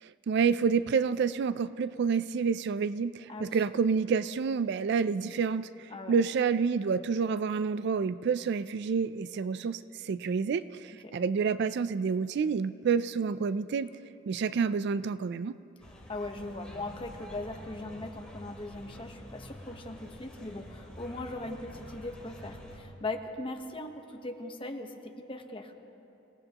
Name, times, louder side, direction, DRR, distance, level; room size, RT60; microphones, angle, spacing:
voice 1, 0.0-13.9 14.3-15.5, right 5 dB, 55° right, 14 dB, 0.3 m, -29 dB
voice 2, 5.9-6.2 10.9-11.1 16.1-25.7, left 2 dB, 25° left, 4 dB, 1.0 m, -39 dB
sound 1, 15.8-22.8, equal, 5° left, 2.6 m, -47 dB
27.0 x 17.5 x 2.9 m, 2.9 s
head